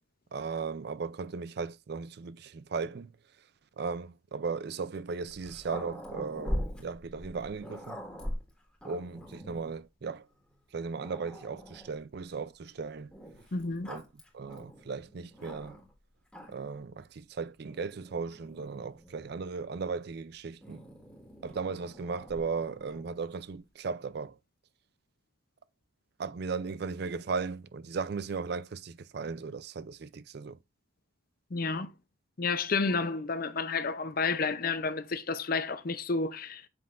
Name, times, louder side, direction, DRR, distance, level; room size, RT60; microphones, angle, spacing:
voice 1, 0.3-3.1 3.8-8.0 8.8-10.2 10.7-13.1 13.9-14.0 14.3-15.8 16.5-20.8 21.4-24.4 26.2-30.6, right 5 dB, 50° right, 0.4 m, -36 dB
Growling, 5.2-9.8 10.5-10.6 10.9-12.0 13.1-15.9 16.3-16.8 17.7-19.5 20.6-23.1, equal, 5° left, 1.7 m, -42 dB
voice 2, 13.5-13.9 31.5-31.9 32.4-36.6, left 4 dB, 45° left, 0.6 m, -30 dB
7.8 x 5.5 x 2.5 m
head